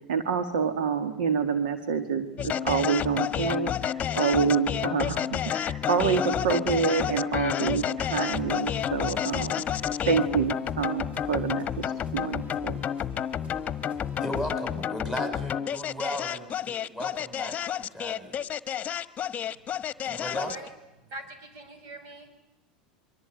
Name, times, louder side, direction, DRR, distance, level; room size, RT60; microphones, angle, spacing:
voice 1, 0.1-3.7 4.2-9.8 10.0-12.7, right 6 dB, 80° right, 8 dB, 2.1 m, -27 dB
sound 1, 2.4-20.7, left 9 dB, 30° left, 1.3 m, -30 dB
sound 2, 8.0-14.8, right 1 dB, 25° right, 6.8 m, -48 dB
voice 2, 14.2-18.4 20.0-20.5, equal, 10° right, 6 dB, 6.6 m, -36 dB
voice 3, 19.5-22.4, right 2 dB, 60° right, 8 dB, 6.3 m, -45 dB
26.5 x 24.0 x 9.2 m, 0.93 s
hypercardioid pair, 90°, 5 cm